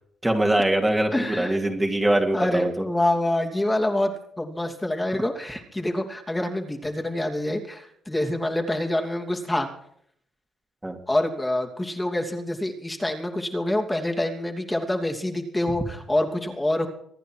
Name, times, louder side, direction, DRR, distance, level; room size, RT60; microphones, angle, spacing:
voice 1, 0.2-2.8 5.1-5.2 10.8-11.0, right 1 dB, 10° right, 2 dB, 2.8 m, -23 dB
voice 2, 1.1-1.6 2.3-9.7 11.1-16.9, left 1 dB, 10° left, 2 dB, 2.9 m, -26 dB
25.0 x 10.0 x 4.8 m, 0.67 s
cardioid pair, 90°, 0 cm